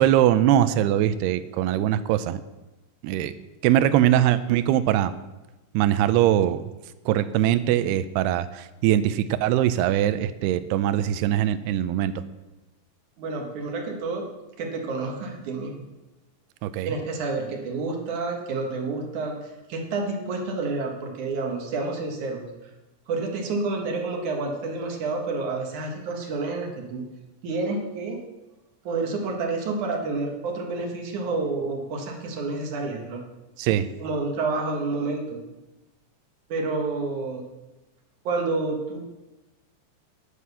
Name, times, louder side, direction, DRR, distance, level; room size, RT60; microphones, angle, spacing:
voice 1, 0.0-2.4 3.0-3.3 3.6-5.1 5.7-6.6 7.1-12.1 16.6-16.9 33.6-33.9, right 12 dB, 80° right, 12 dB, 2.4 m, -22 dB
voice 2, 13.2-14.3 14.6-15.7 16.9-19.4 19.7-22.5 23.1-27.0 27.4-28.2 28.8-33.2 34.0-35.4 36.5-37.4 38.2-39.0, right 3 dB, 55° right, 2 dB, 2.5 m, -29 dB
10.5 x 9.2 x 7.0 m, 1.1 s
omnidirectional pair, 5.2 m